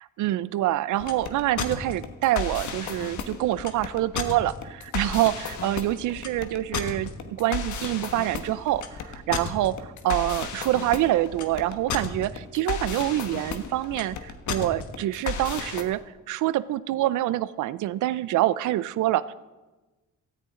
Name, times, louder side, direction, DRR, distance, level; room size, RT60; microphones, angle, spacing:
voice 1, 0.2-16.0 16.3-19.3, right 14 dB, 80° right, 17 dB, 0.6 m, -26 dB
sound 1, 0.9-15.8, left 6 dB, 75° left, 1.4 m, -33 dB
17.0 x 13.5 x 3.8 m, 1.2 s
cardioid pair, 90°, 30 cm